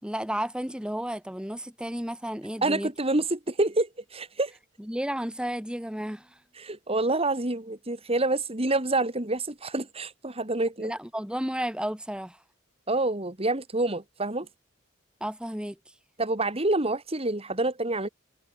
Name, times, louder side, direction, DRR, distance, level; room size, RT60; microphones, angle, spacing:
voice 1, 0.0-2.9 4.8-6.4 10.8-12.4 15.2-15.9, equal, 5° right, 3.0 m, -32 dB
voice 2, 2.6-4.5 6.5-10.9 12.9-14.5 16.2-18.1, right 2 dB, 30° right, 2.6 m, -27 dB
head